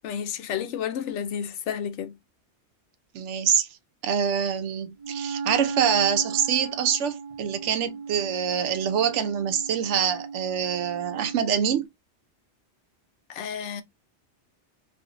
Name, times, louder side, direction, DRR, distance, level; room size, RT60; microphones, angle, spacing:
voice 1, 0.0-2.2 13.3-13.8, left 8 dB, 85° left, 0.9 m, -31 dB
voice 2, 3.1-3.7 4.0-11.9, right 8 dB, 85° right, 0.9 m, -25 dB
Wind instrument woodwind instrument, 5.0-11.7, right 5 dB, 55° right, 0.4 m, -36 dB
2.5 x 2.5 x 3.7 m
omnidirectional pair, 1.2 m